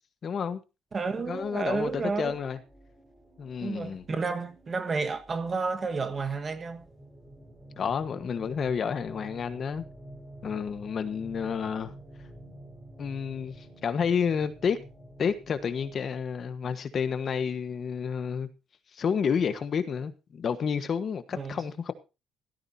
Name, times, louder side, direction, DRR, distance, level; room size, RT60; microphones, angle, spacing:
voice 1, 0.2-0.6 1.3-2.6 3.4-4.0 7.8-9.9 10.4-11.9 13.0-14.8 15.2-18.5 18.9-21.9, left 6 dB, 35° left, 1.3 m, -30 dB
sound 1, 0.9-16.0, right 1 dB, 5° right, 5.1 m, -50 dB
voice 2, 0.9-2.4 3.6-6.8 21.4-21.6, right 4 dB, 25° right, 1.4 m, -31 dB
17.0 x 14.0 x 2.8 m
cardioid pair, 175°, 0 cm